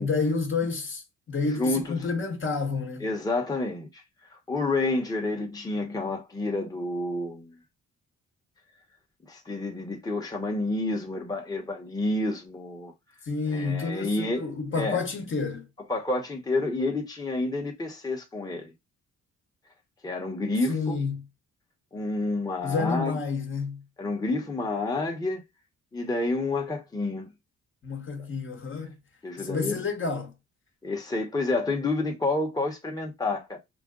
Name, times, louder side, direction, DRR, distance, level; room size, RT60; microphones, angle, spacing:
voice 1, 0.0-3.1 13.2-15.7 20.7-21.3 22.6-23.8 27.8-28.9 29.4-30.3, left 4 dB, 40° left, 1.0 m, -29 dB
voice 2, 1.6-2.0 3.0-4.0 4.3-7.5 9.3-12.9 13.5-14.5 14.7-15.0 15.9-18.7 20.0-21.0 21.9-23.2 24.0-25.4 25.9-27.3 29.2-29.8 30.8-33.6, left 2 dB, 10° left, 0.9 m, -29 dB
4.9 x 2.2 x 3.7 m
cardioid pair, 105°, 30 cm